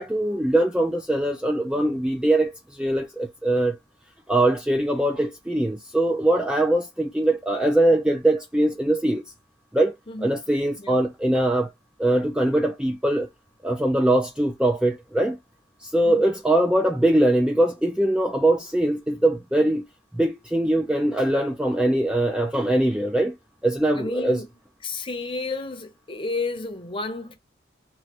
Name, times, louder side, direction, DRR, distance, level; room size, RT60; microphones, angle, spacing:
voice 1, 0.0-3.8 4.3-9.2 9.7-9.9 10.2-11.7 12.0-13.3 13.6-15.4 15.8-19.9 20.2-23.4 23.6-24.4, right 1 dB, 5° right, 0.3 m, -22 dB
voice 2, 10.1-10.4 10.8-11.0 16.0-16.3 23.9-27.4, left 3 dB, 25° left, 0.7 m, -32 dB
3.0 x 2.5 x 2.8 m
head